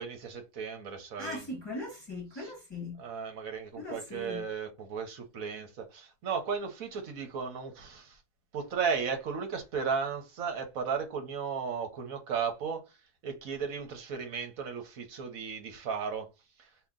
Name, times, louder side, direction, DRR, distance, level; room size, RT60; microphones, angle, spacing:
voice 1, 0.0-1.4 2.3-2.5 3.0-8.2 8.5-12.9 13.2-16.3, right 6 dB, 70° right, 1.3 m, -35 dB
voice 2, 1.2-3.0 3.8-4.4, left 2 dB, 20° left, 1.2 m, -39 dB
2.9 x 2.6 x 3.6 m
omnidirectional pair, 1.5 m